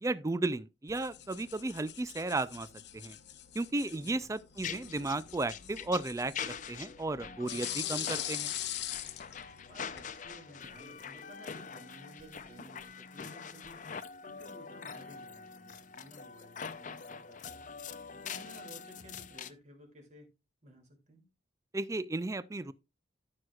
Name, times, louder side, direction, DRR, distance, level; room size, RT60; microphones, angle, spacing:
voice 1, 0.0-2.7 2.9-3.2 3.5-8.5 21.7-22.7, right 2 dB, 15° right, 0.4 m, -34 dB
sound 1, 0.9-10.1, left 12 dB, 60° left, 1.0 m, -42 dB
voice 2, 3.9-4.4 9.6-13.9 14.2-17.6 18.2-20.3 20.6-21.3, right 1 dB, 40° right, 2.6 m, -55 dB
sound 2, 4.6-19.5, left 6 dB, 40° left, 0.5 m, -44 dB
14.0 x 6.3 x 2.4 m
head